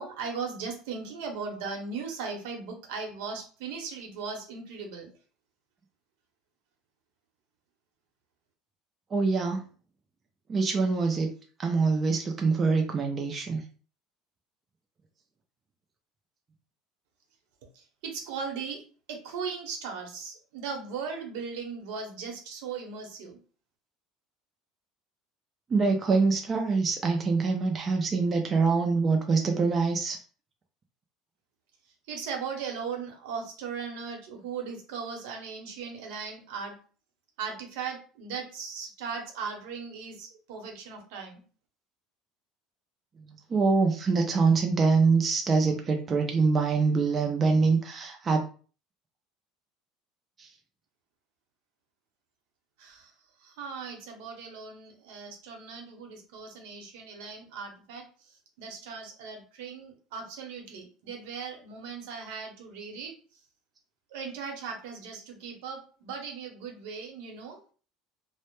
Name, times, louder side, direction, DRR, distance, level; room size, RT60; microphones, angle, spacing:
voice 1, 0.0-5.1 17.7-18.8 19.1-23.4 32.1-36.8 37.4-41.4 52.8-53.1 53.4-58.0 58.6-63.1 64.1-67.6, right 5 dB, 85° right, 3 dB, 0.7 m, -38 dB
voice 2, 9.1-9.6 10.5-11.3 11.6-13.6 25.7-30.2 43.5-48.4, right 4 dB, 25° right, 3 dB, 0.4 m, -24 dB
2.1 x 2.0 x 2.9 m, 0.39 s
cardioid pair, 145°, 0 cm